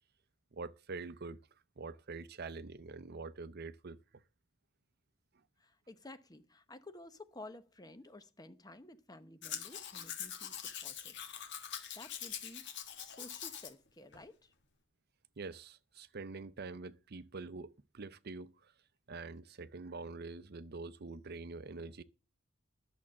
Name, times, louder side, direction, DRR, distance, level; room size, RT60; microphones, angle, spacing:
voice 1, 0.5-1.4 1.8-4.0 15.4-18.7 19.1-22.0, right 3 dB, 50° right, 0.7 m, -45 dB
voice 2, 5.6-11.7 11.9-12.7 13.0-14.5, left 2 dB, 20° left, 0.9 m, -53 dB
Domestic sounds home sounds, 9.4-13.7 14.1-14.2, left 9 dB, 60° left, 1.6 m, -44 dB
11.0 x 7.1 x 7.5 m
head